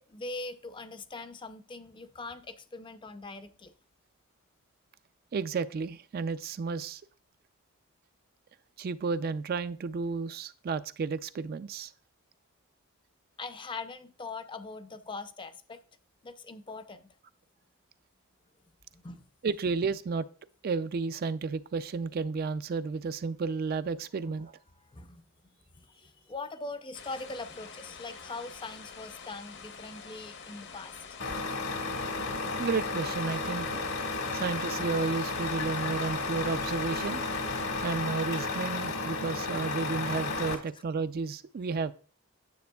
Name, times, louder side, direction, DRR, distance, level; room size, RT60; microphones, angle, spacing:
voice 1, 0.0-3.7 13.4-15.8 16.2-17.1 18.9-19.3 24.2-24.3 24.8-25.2 25.7-31.0 40.5-40.6, left 3 dB, 25° left, 0.5 m, -42 dB
voice 2, 5.3-7.0 8.8-11.9 19.4-20.3 20.6-24.6 32.6-33.8 34.3-37.2 37.8-41.9, right 4 dB, 45° right, 0.3 m, -32 dB
sound 1, 26.9-37.7, left 6 dB, 55° left, 0.8 m, -47 dB
Truck, 31.2-40.6, left 3 dB, 75° left, 1.6 m, -33 dB
9.4 x 7.5 x 2.3 m
head